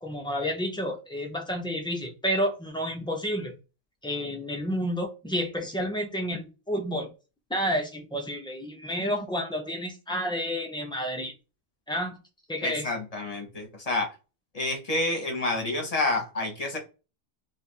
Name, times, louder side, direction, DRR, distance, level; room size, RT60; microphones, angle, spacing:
voice 1, 0.0-3.5 4.0-7.1 7.5-11.3 11.9-12.2 12.5-12.9, equal, 5° left, 3 dB, 0.4 m, -30 dB
voice 2, 12.6-14.1 14.5-16.8, left 2 dB, 40° left, 3 dB, 0.9 m, -29 dB
2.7 x 2.4 x 4.1 m, 0.31 s
omnidirectional pair, 1.0 m